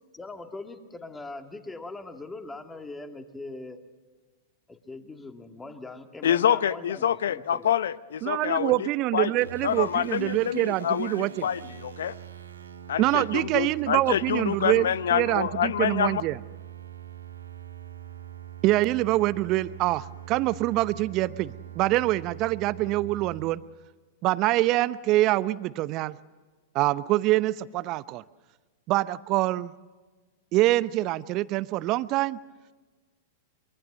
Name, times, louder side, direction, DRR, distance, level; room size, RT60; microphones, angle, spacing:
voice 1, 0.1-3.8 4.7-7.7, left 2 dB, 10° left, 6 dB, 2.1 m, -41 dB
voice 2, 6.2-8.8 9.1-9.3 9.6-12.1 12.9-16.2, left 9 dB, 70° left, 18 dB, 0.8 m, -26 dB
voice 3, 8.2-11.5 13.0-16.4 18.6-23.6 24.2-26.2 26.7-28.2 28.9-29.7 30.5-32.4, right 17 dB, 40° right, 17 dB, 0.7 m, -25 dB
sound 1, 9.4-23.5, right 10 dB, 80° right, 1.8 m, -43 dB
24.0 x 23.5 x 6.4 m, 1.3 s
figure-of-eight pair, 100°, 0 cm